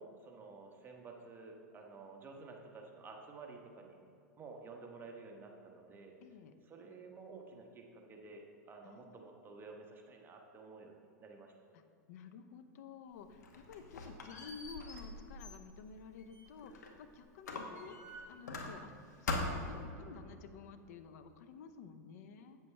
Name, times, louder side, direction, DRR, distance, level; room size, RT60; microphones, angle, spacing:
voice 1, 0.0-4.0 4.4-6.1 6.6-11.5, right 3 dB, 25° right, 1 dB, 1.1 m, -52 dB
voice 2, 6.2-6.6 8.8-9.1 11.7-11.8 12.1-18.9 19.2-22.6, left 5 dB, 65° left, 9 dB, 0.7 m, -52 dB
Squeak, 13.2-17.0 17.4-19.0 19.3-19.8, left 2 dB, 90° left, 1.0 m, -42 dB
8.4 x 7.8 x 3.3 m, 2.5 s
hypercardioid pair, 115°, 9 cm